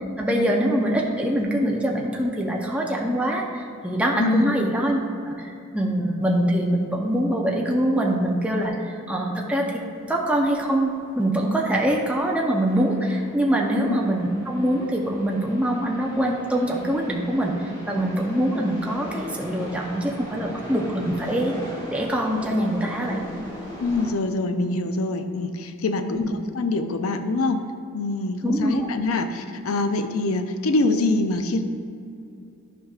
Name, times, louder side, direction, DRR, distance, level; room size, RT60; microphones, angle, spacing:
voice 1, 0.2-5.0 5.2-21.6 21.9-23.2 26.1-26.4 28.4-28.9, right 1 dB, 5° right, -1 dB, 0.6 m, -24 dB
voice 2, 4.2-4.6 13.7-14.0 23.8-27.6 27.9-31.7, left 2 dB, 80° left, 8 dB, 0.5 m, -24 dB
sound 1, 9.9-24.1, equal, 20° left, 1.4 m, -40 dB
11.5 x 5.2 x 2.4 m, 2.5 s
head